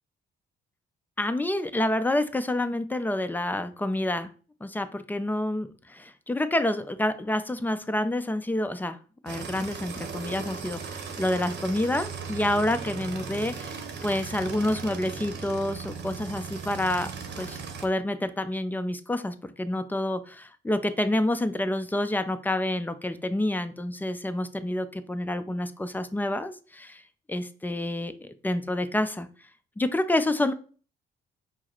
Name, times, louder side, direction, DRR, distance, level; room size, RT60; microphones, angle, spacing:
voice 1, 1.2-4.3 4.6-9.0 9.2-13.8 14.0-17.1 17.4-27.0 27.3-29.3 29.8-30.5, left 1 dB, 10° left, 11 dB, 0.4 m, -28 dB
sound 1, 9.3-17.9, right 5 dB, 60° right, 0.8 m, -37 dB
4.7 x 2.0 x 4.4 m, 0.37 s
cardioid pair, 90°, 20 cm